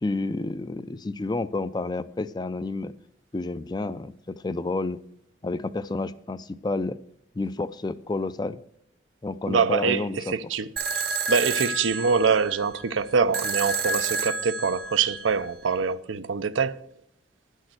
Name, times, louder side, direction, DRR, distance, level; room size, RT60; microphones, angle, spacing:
voice 1, 0.0-2.9 3.3-5.0 5.4-7.0 7.4-8.6 9.2-10.3, left 2 dB, 20° left, 0.4 m, -30 dB
voice 2, 9.5-11.0 11.3-16.8, right 5 dB, 85° right, 0.6 m, -24 dB
sound 1, 10.8-15.8, right 4 dB, 55° right, 0.9 m, -30 dB
10.5 x 6.4 x 7.8 m
head